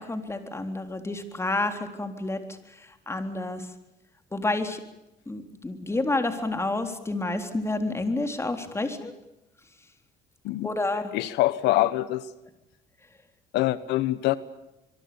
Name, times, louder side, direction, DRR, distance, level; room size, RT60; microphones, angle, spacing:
voice 1, 0.0-2.4 2.7-3.7 4.3-4.8 5.3-9.1 10.6-11.1, left 2 dB, 15° left, 6 dB, 3.8 m, -29 dB
voice 2, 11.1-12.3 13.5-14.4, left 16 dB, 85° left, 16 dB, 1.1 m, -24 dB
26.0 x 23.0 x 7.0 m, 0.90 s
cardioid pair, 110°, 17 cm